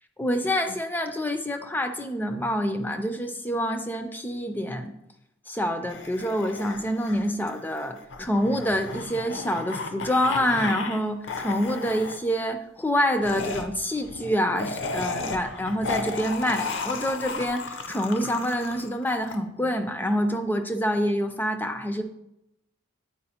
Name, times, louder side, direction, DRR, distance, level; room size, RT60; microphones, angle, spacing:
voice 1, 0.2-4.9 5.5-22.0, equal, 10° left, 6 dB, 0.3 m, -27 dB
sound 1, 5.9-11.0 11.2-12.2 13.2-19.3, left 4 dB, 65° left, 0.6 m, -34 dB
8.6 x 4.6 x 2.8 m, 0.85 s
head